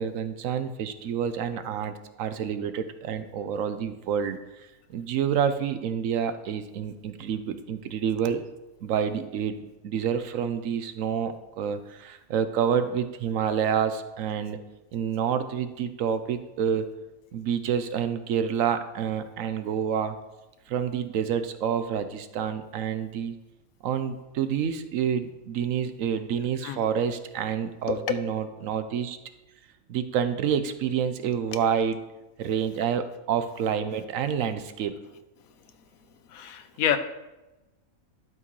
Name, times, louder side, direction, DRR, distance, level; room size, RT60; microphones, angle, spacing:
voice 1, 0.0-8.4 8.8-9.6 9.8-14.6 14.9-16.9 17.3-20.1 20.7-23.3 23.8-29.2 29.9-32.1 32.4-34.9, right 8 dB, 75° right, 10 dB, 1.0 m, -28 dB
voice 2, 36.3-37.0, left 10 dB, 80° left, 10 dB, 1.1 m, -28 dB
12.0 x 6.1 x 3.1 m, 1.0 s
omnidirectional pair, 1.5 m